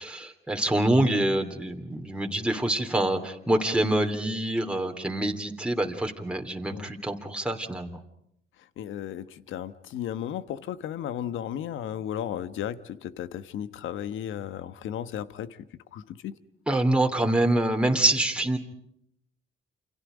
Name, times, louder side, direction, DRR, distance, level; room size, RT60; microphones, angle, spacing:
voice 1, 0.0-8.0 16.7-18.6, right 1 dB, 5° right, 3 dB, 2.9 m, -26 dB
voice 2, 8.8-15.6 15.9-16.4, left 10 dB, 80° left, 13 dB, 1.3 m, -34 dB
29.0 x 27.5 x 5.1 m, 0.74 s
cardioid pair, 90°, 20 cm